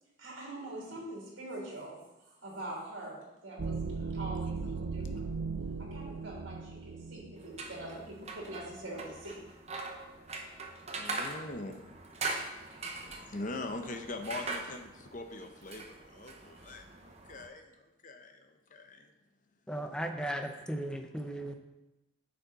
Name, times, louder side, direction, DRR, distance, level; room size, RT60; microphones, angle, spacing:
voice 1, 0.0-5.3 5.9-9.4, right 1 dB, 70° right, -4 dB, 3.0 m, -44 dB
sound 1, 3.6-8.1, right 4 dB, 90° right, 0.6 m, -37 dB
sound 2, 7.4-17.5, right 3 dB, 30° right, 0.9 m, -42 dB
voice 2, 11.0-11.8 13.3-17.7 18.0-19.1, left 2 dB, 40° left, 5 dB, 0.8 m, -42 dB
voice 3, 19.7-21.5, right 1 dB, 5° left, 4 dB, 0.7 m, -36 dB
9.7 x 6.7 x 4.1 m, 0.98 s
head